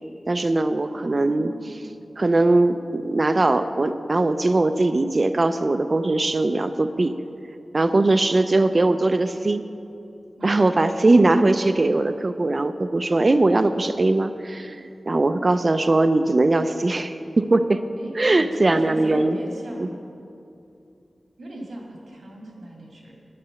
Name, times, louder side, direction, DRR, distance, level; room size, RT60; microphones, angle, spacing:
voice 1, 0.3-1.5 2.2-7.1 7.7-9.6 10.4-17.8 18.2-19.4, right 2 dB, 45° right, 10 dB, 0.5 m, -20 dB
voice 2, 0.9-1.9 10.4-10.5 18.0-19.9 21.4-23.1, right 1 dB, 90° right, -1 dB, 2.5 m, -38 dB
11.0 x 9.8 x 6.9 m, 2.6 s
wide cardioid pair, 70°, 0 cm